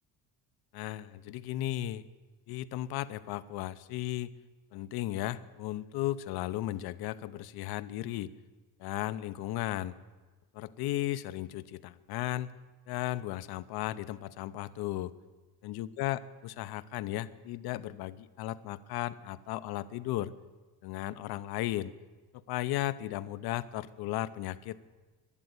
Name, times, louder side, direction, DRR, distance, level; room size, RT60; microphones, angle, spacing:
voice 1, 0.7-2.0 2.5-4.3 4.7-8.3 8.8-9.9 10.5-12.5 12.9-15.1 15.6-20.3 20.8-21.9 22.5-24.8, left 15 dB, 85° left, 16 dB, 0.7 m, -35 dB
12.5 x 10.5 x 9.4 m, 1.3 s
cardioid pair, 155°, 37 cm